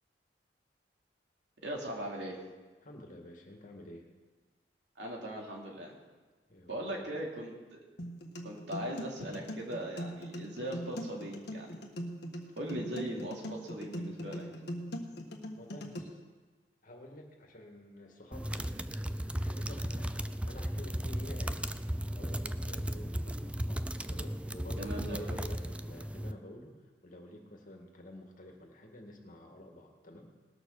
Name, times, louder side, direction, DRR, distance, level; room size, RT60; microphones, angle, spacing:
voice 1, 1.6-2.4 5.0-5.9 6.7-7.8 8.4-11.8 12.6-14.5 24.8-25.4, right 1 dB, 80° right, -1 dB, 2.9 m, -39 dB
voice 2, 2.8-4.1 6.5-7.2 15.6-16.2 16.8-18.8 19.3-21.7 22.1-30.3, left 1 dB, 50° left, 2 dB, 2.0 m, -50 dB
sound 1, 8.0-16.0, equal, 65° left, 1.5 m, -41 dB
sound 2, 18.3-26.3, equal, 5° right, 0.4 m, -36 dB
19.5 x 6.6 x 6.6 m, 1.3 s
head